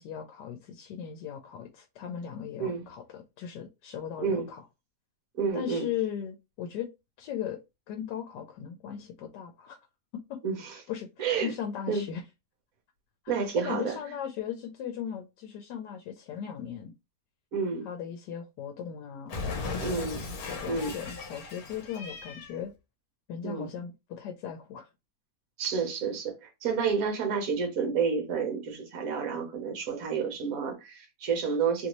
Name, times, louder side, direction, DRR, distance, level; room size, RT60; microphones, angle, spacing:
voice 1, 0.0-4.6 5.5-6.9 7.2-7.6 7.9-9.8 10.3-10.4 10.7-12.2 13.2-13.4 13.6-16.9 17.8-19.9 20.4-22.7 23.3-24.9, left 9 dB, 90° left, 1.2 m, -38 dB
voice 2, 5.3-5.9 10.4-10.8 11.2-11.5 11.9-12.0 13.3-14.0 17.5-17.9 19.8-20.2 20.7-20.9 23.4-23.7 25.6-31.9, right 5 dB, 60° right, 1.2 m, -30 dB
Cat, 19.3-22.6, left 3 dB, 65° left, 1.2 m, -37 dB
3.0 x 2.6 x 2.9 m
omnidirectional pair, 1.8 m